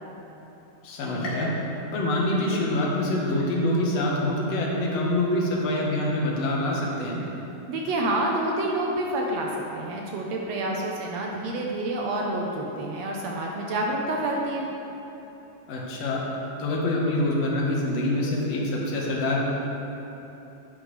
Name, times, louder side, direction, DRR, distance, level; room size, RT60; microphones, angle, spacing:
voice 1, 0.8-1.6 1.9-7.2 15.7-16.3 16.6-19.4, left 1 dB, 60° left, -3 dB, 2.2 m, -25 dB
sound 1, 1.2-2.9 3.4-4.0 4.5-4.6 5.6-5.7, left 1 dB, 85° left, 3.4 m, -40 dB
voice 2, 7.7-9.5 9.7-14.7, right 1 dB, 75° right, -1 dB, 1.7 m, -28 dB
10.0 x 9.9 x 3.2 m, 3.0 s
omnidirectional pair, 3.6 m